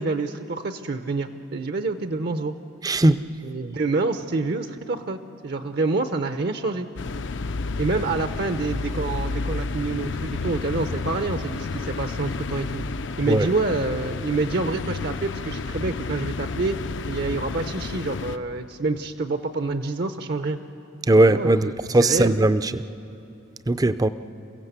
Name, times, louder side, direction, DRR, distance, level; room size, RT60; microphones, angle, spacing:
voice 1, 0.0-2.5 3.4-6.9 7.8-12.8 13.2-16.8 17.1-20.6 21.2-22.3, right 3 dB, 55° right, 9 dB, 0.7 m, -27 dB
voice 2, 2.8-3.2 13.3-13.5 21.1-22.8 23.7-24.1, right 2 dB, 20° right, 13 dB, 0.5 m, -18 dB
sound 1, 7.0-18.4, left 3 dB, 65° left, 0.6 m, -31 dB
28.0 x 16.0 x 8.1 m, 2.8 s
head